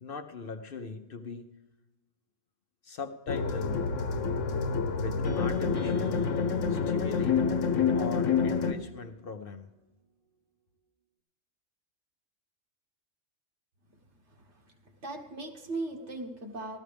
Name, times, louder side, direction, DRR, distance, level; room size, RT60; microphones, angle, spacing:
voice 1, 0.0-1.5 2.8-3.9 4.9-6.2 6.7-7.5 7.9-9.7, left 4 dB, 55° left, 6 dB, 0.8 m, -40 dB
sound 1, 3.3-8.7, left 5 dB, 85° left, 1.1 m, -28 dB
sound 2, 5.2-9.4, right 3 dB, 35° right, 0.7 m, -48 dB
voice 2, 14.4-14.7 15.0-16.8, right 2 dB, 65° right, 2 dB, 1.8 m, -38 dB
15.0 x 13.0 x 3.4 m, 1.1 s
omnidirectional pair, 1.3 m